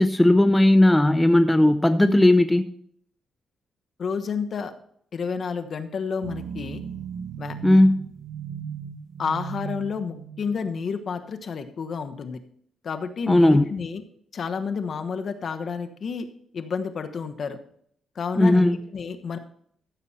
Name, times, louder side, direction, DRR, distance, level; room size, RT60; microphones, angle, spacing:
voice 1, 0.0-2.7 7.6-8.0 13.3-13.7 18.4-18.8, left 1 dB, 10° left, 9 dB, 0.6 m, -17 dB
voice 2, 4.0-4.7 5.1-6.8 7.4-7.5 9.2-12.4 12.8-14.0 14.3-16.2 16.5-17.6 18.1-19.4, left 5 dB, 55° left, 8 dB, 1.2 m, -30 dB
sound 1, 6.2-10.8, right 8 dB, 65° right, 0.9 m, -36 dB
14.5 x 7.2 x 4.2 m, 0.64 s
cardioid pair, 95°, 0 cm